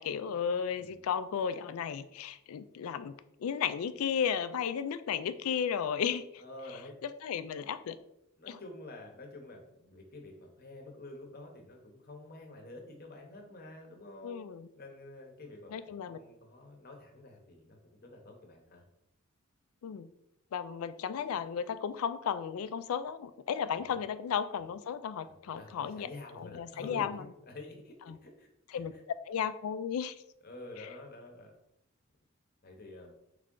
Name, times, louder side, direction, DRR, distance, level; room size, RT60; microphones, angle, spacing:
voice 1, 0.0-3.1 3.4-6.4 7.0-8.0 8.5-8.6 14.2-14.7 15.7-16.2 19.8-20.1 20.5-26.1 26.4-27.2 28.7-28.9 29.2-30.1, left 7 dB, 85° left, 13 dB, 0.3 m, -34 dB
voice 2, 6.4-7.0 8.4-14.4 14.8-18.8 23.7-24.0 25.2-27.2 27.4-29.0 30.4-31.5 32.6-33.1, left 2 dB, 45° left, 2 dB, 0.8 m, -49 dB
3.6 x 3.2 x 3.7 m, 0.79 s
head